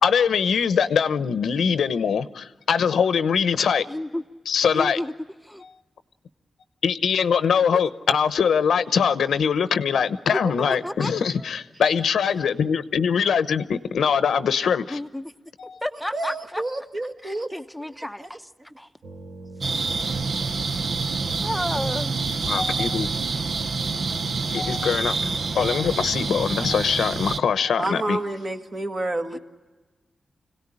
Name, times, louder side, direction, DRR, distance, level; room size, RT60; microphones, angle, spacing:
voice 1, 0.0-3.8 4.5-5.0 6.8-15.0 15.6-15.8 22.4-23.1 24.5-28.2, left 7 dB, 90° left, 0.9 m, -22 dB
voice 2, 3.9-4.2 4.7-5.1 5.4-5.6 7.7-7.8 10.3-11.5 14.9-15.3 15.8-16.6 17.2-18.5 18.8-18.9 21.4-22.1 29.3-29.4, left 1 dB, ahead, 0.9 m, -31 dB
voice 3, 16.1-17.5 18.2-18.3 27.8-29.4, right 2 dB, 35° right, 1.8 m, -29 dB
sound 1, 19.0-25.7, right 3 dB, 70° right, 1.3 m, -42 dB
sound 2, 19.6-27.4, right 4 dB, 55° right, 0.8 m, -27 dB
26.0 x 17.5 x 9.9 m
wide cardioid pair, 115°, 0 cm